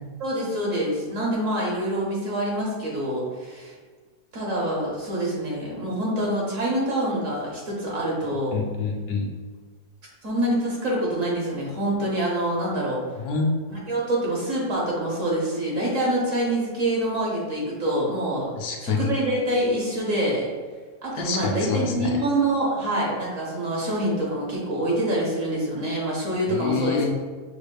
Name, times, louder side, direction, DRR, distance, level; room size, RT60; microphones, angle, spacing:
voice 1, 0.2-3.7 4.3-8.6 10.2-13.0 13.7-18.5 18.8-20.5 21.0-27.1, right 1 dB, 55° right, -4 dB, 1.4 m, -26 dB
voice 2, 8.5-9.3 13.2-13.5 18.5-19.1 21.1-22.2 26.5-27.1, left 5 dB, 75° left, 2 dB, 1.2 m, -27 dB
6.2 x 3.3 x 2.3 m, 1.4 s
omnidirectional pair, 1.7 m